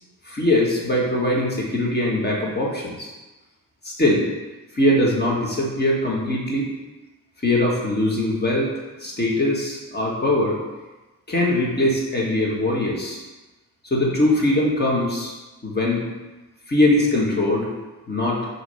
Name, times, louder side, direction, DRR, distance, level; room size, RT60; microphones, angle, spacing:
voice 1, 0.3-3.1 4.0-4.2 4.7-6.7 7.4-8.7 9.0-10.6 11.3-13.2 13.9-15.3 15.6-16.0 16.7-17.7 18.1-18.4, left 1 dB, 25° left, -3 dB, 1.6 m, -21 dB
6.1 x 3.2 x 5.5 m, 1.1 s
cardioid pair, 120°, 37 cm